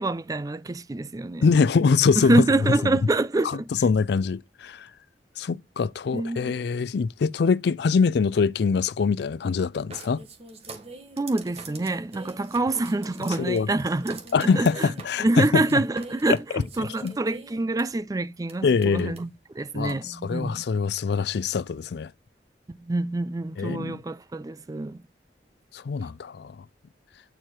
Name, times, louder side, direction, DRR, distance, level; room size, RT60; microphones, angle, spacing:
voice 1, 0.0-1.5 2.2-3.7 6.1-6.5 11.2-14.9 15.2-19.3 19.5-20.6 22.8-25.0, right 2 dB, 20° right, 0.4 m, -26 dB
voice 2, 1.4-3.0 3.4-4.9 5.4-10.2 13.4-13.7 14.3-15.6 16.3-16.4 17.0-17.1 18.6-19.2 19.7-22.1 23.6-24.0 25.7-26.6, left 5 dB, 65° left, 0.4 m, -24 dB
sound 1, 9.9-17.8 18.5-18.6 18.8-19.2 19.9-20.0, right 3 dB, 35° right, 1.4 m, -44 dB
9.2 x 4.6 x 4.6 m
head